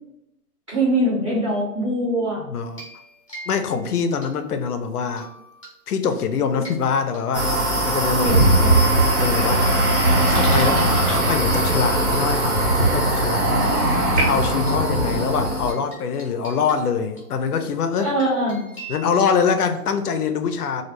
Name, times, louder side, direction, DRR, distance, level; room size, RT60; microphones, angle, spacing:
voice 1, 0.7-2.4 8.2-8.8 18.0-18.7, right 1 dB, 20° right, 0.7 m, -23 dB
voice 2, 2.4-2.8 3.5-5.3 5.9-7.5 7.9-8.4 9.2-9.7 10.2-13.6 14.2-18.1 18.9-20.8, left 6 dB, 75° left, 0.5 m, -24 dB
sound 1, 2.7-4.6 5.1-5.7 6.1-8.3 9.1-9.2 9.5-12.3 13.7-13.8 14.1-14.2 14.6-20.0, right 1 dB, 20° left, 0.5 m, -43 dB
sound 2, 7.3-15.7, right 1 dB, 60° right, 0.9 m, -24 dB
sound 3, 8.3-15.5, right 2 dB, 80° right, 1.2 m, -21 dB
2.3 x 2.1 x 3.1 m
hypercardioid pair, 175°, 46 cm